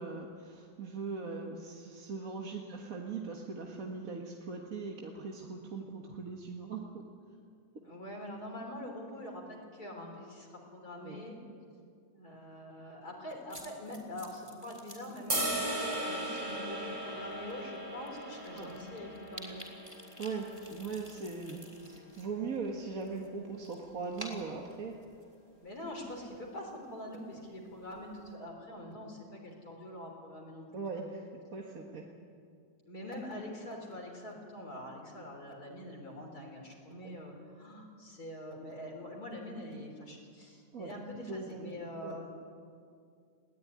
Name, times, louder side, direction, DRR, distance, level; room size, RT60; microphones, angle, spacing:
voice 1, 0.0-7.1 11.0-11.2 18.6-18.7 20.2-25.0 30.7-31.3 31.5-32.0 37.0-37.1 40.7-41.0 41.3-41.7 42.0-42.2, right 4 dB, 45° right, 0 dB, 1.9 m, -40 dB
voice 2, 7.8-11.4 12.1-19.7 25.6-30.7 30.9-31.0 32.9-42.3, left 1 dB, 50° left, 0 dB, 4.2 m, -44 dB
sound 1, 13.5-16.0 16.3-16.6 17.3-17.4 17.8-17.9 18.1-22.3 22.5-25.3, equal, 10° right, 3.9 m, -51 dB
sound 2, 15.3-21.5, right 1 dB, 75° right, 7.7 m, -38 dB
21.0 x 17.0 x 9.7 m, 2.2 s
omnidirectional pair, 2.1 m